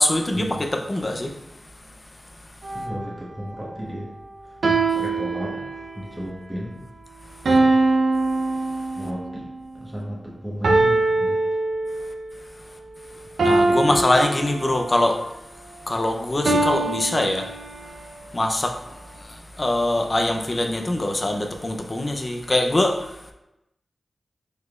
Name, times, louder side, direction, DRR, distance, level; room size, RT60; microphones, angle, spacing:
voice 1, 0.0-1.6 13.4-15.2 15.8-23.3, left 1 dB, 35° left, 4 dB, 0.5 m, -24 dB
sound 1, 2.6-3.1 4.6-6.1 7.5-9.3 10.6-12.2 13.4-15.0 16.5-18.0, right 2 dB, 85° right, 0.6 m, -22 dB
voice 2, 2.7-4.1 4.4-4.6 4.9-5.7 5.9-6.8 7.4-7.9 8.9-9.5 9.7-11.5 13.6-14.0 18.2-18.3, equal, 5° right, -4 dB, 1.1 m, -34 dB
5.0 x 4.1 x 2.4 m, 0.92 s
wide cardioid pair, 75°, 0 cm